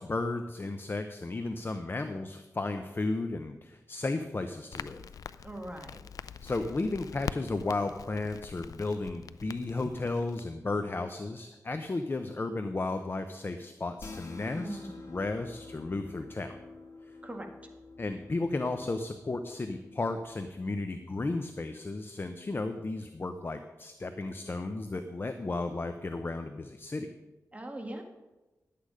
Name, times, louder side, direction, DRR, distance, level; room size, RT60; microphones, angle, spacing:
voice 1, 0.0-5.1 6.4-14.8 15.1-16.6 17.1-17.2 18.0-27.1, left 2 dB, 40° left, 8 dB, 0.7 m, -34 dB
Crackle, 4.7-10.4, left 7 dB, 80° left, 0.3 m, -44 dB
voice 2, 5.4-6.0 14.5-15.0 17.2-17.5 27.5-28.0, right 1 dB, 25° right, 3 dB, 1.9 m, -40 dB
sound 1, 14.0-20.5, left 3 dB, 60° left, 1.5 m, -48 dB
12.0 x 8.5 x 5.0 m, 1.1 s
cardioid pair, 65°, 6 cm